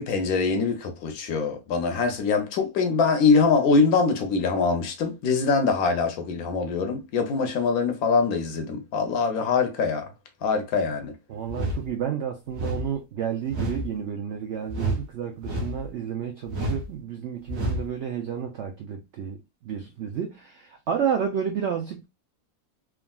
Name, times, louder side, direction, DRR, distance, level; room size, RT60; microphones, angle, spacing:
voice 1, 0.0-10.1 10.4-11.1, left 4 dB, 70° left, 1.0 m, -23 dB
voice 2, 11.3-22.1, right 8 dB, 80° right, 0.6 m, -31 dB
sound 1, 11.5-11.9 12.5-12.9 13.5-13.9 14.7-15.1 15.4-15.9 16.5-16.9 17.5-17.9, right 1 dB, 50° right, 0.9 m, -29 dB
3.5 x 2.4 x 2.2 m
omnidirectional pair, 1.7 m